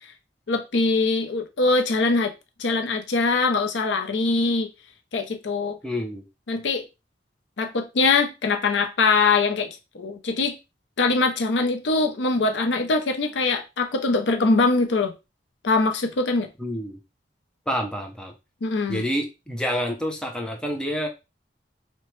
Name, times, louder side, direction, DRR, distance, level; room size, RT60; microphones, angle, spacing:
voice 1, 0.5-2.3 2.6-4.7 5.1-5.8 6.5-6.9 7.6-10.6 11.0-15.1 15.6-16.5 18.6-19.0, left 3 dB, 85° left, 0.6 m, -22 dB
voice 2, 5.8-6.3 16.6-17.0 17.7-18.3 18.9-21.1, equal, 5° left, 0.4 m, -28 dB
2.9 x 2.1 x 3.0 m
head